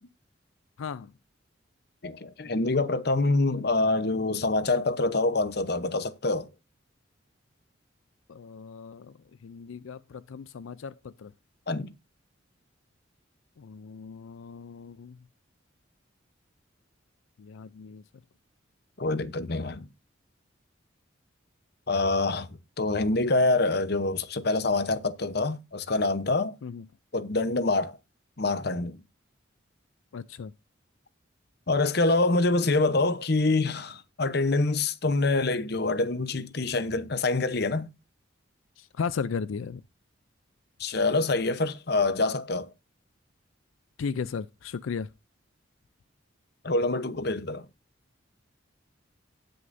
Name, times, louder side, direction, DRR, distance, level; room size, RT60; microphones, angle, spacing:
voice 1, 0.8-1.1 8.3-11.3 13.6-15.2 17.4-18.0 26.6-26.9 30.1-30.5 33.0-33.1 38.8-39.8 44.0-45.1, left 5 dB, 85° left, 0.4 m, -36 dB
voice 2, 2.0-6.5 11.7-11.9 19.0-19.9 21.9-22.5 22.8-26.6 27.1-28.0 28.4-29.0 31.7-37.9 40.8-42.7 46.6-47.6, left 2 dB, 55° left, 0.9 m, -26 dB
18.0 x 6.4 x 2.6 m
head